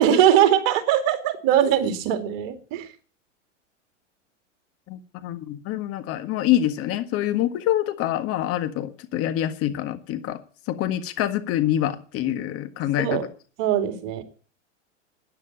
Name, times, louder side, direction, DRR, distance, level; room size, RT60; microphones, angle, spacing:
voice 1, 0.0-2.9 13.0-13.3 13.6-14.2, right 10 dB, 50° right, 8 dB, 2.5 m, -21 dB
voice 2, 4.9-10.4 10.7-13.2, left 12 dB, 40° left, 10 dB, 1.7 m, -26 dB
12.5 x 10.0 x 8.7 m, 0.42 s
hypercardioid pair, 105°, 37 cm